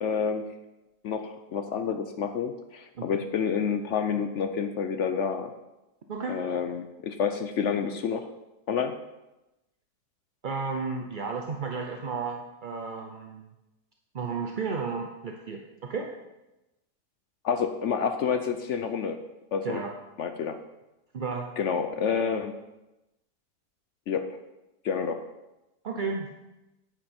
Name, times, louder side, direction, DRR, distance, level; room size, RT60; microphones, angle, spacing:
voice 1, 0.0-0.5 1.0-5.5 6.3-8.3 8.7-8.9 17.4-19.2 19.5-19.8 20.2-20.6 21.6-22.5 24.1-24.3 24.8-25.2, left 6 dB, 65° left, 8 dB, 0.8 m, -28 dB
voice 2, 3.0-3.3 6.1-6.4 10.4-13.5 14.1-16.1 19.6-19.9 21.1-21.5 25.8-26.3, right 4 dB, 50° right, 2 dB, 0.6 m, -33 dB
9.1 x 8.2 x 4.3 m, 0.98 s
omnidirectional pair, 1.7 m